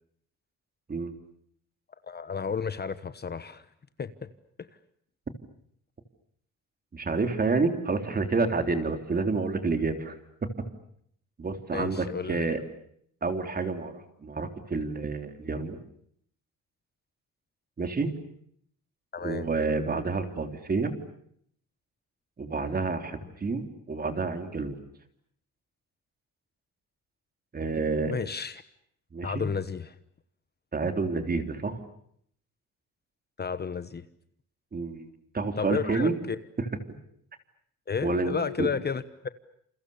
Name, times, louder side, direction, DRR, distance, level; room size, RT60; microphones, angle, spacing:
voice 1, 2.0-3.6 4.0-4.3 9.3-9.4 11.7-12.5 19.1-19.5 28.1-28.6 29.2-29.9 33.4-34.1 35.6-36.4 37.9-39.3, left 6 dB, 30° left, 12 dB, 1.2 m, -32 dB
voice 2, 6.9-10.5 11.4-12.6 13.2-15.8 17.8-18.1 19.2-20.9 22.4-24.8 27.5-28.1 29.1-29.4 30.7-31.8 34.7-36.1 36.6-36.7 38.0-38.7, right 4 dB, 30° right, 6 dB, 3.4 m, -29 dB
29.5 x 28.5 x 7.0 m, 0.68 s
cardioid pair, 140°, 31 cm